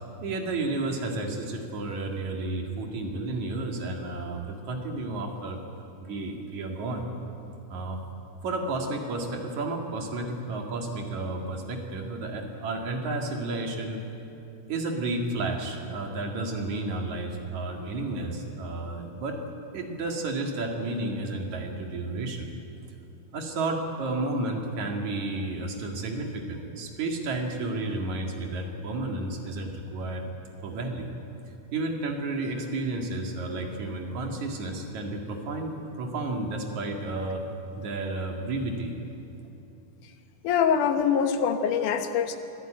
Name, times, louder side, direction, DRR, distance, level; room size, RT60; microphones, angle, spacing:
voice 1, 0.2-5.6 6.0-7.0 7.7-8.0 8.4-14.0 14.7-19.4 19.7-22.5 23.3-30.2 30.6-31.1 31.7-37.4 37.8-38.9, right 2 dB, 70° right, 2 dB, 3.5 m, -32 dB
voice 2, 40.4-42.4, left 7 dB, 85° left, 7 dB, 2.7 m, -24 dB
24.0 x 17.0 x 9.0 m, 2.8 s
omnidirectional pair, 3.5 m